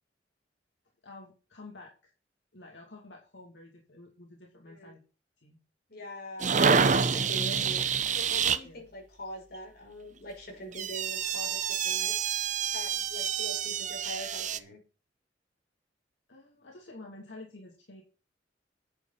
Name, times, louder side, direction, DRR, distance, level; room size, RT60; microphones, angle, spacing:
voice 1, 1.0-2.1 2.5-5.0 5.4-5.6 8.6-8.8 16.3-18.0, left 2 dB, 80° left, 0 dB, 2.7 m, -49 dB
voice 2, 4.6-4.9 5.9-7.8 8.1-12.1 12.7-14.8, equal, 60° left, 0 dB, 5.8 m, -43 dB
sound 1, 6.4-8.6 10.7-14.6, right 6 dB, 45° right, 0.8 m, -27 dB
10.0 x 8.3 x 5.8 m, 0.36 s
head